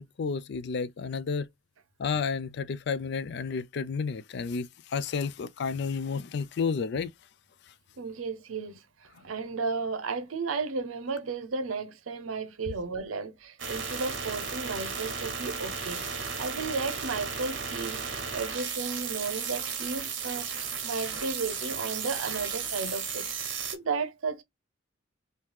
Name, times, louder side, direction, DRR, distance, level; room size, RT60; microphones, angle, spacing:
voice 1, 0.0-1.5 2.0-7.1, left 5 dB, 55° left, 0.3 m, -31 dB
voice 2, 8.0-18.0 18.3-24.4, right 4 dB, 90° right, 0.7 m, -34 dB
sound 1, 13.6-23.8, right 6 dB, 60° right, 1.1 m, -34 dB
3.1 x 2.8 x 3.3 m
head